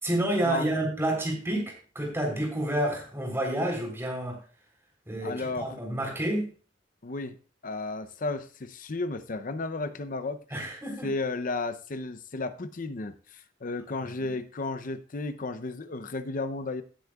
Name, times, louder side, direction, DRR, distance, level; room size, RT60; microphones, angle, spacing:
voice 1, 0.0-4.4 5.1-6.5 10.5-11.1 14.2-14.3, right 1 dB, 15° right, 0 dB, 3.7 m, -29 dB
voice 2, 5.2-5.8 7.0-7.3 7.6-10.4 11.0-16.8, left 3 dB, 45° left, 12 dB, 0.6 m, -33 dB
16.5 x 8.2 x 2.4 m, 0.37 s
head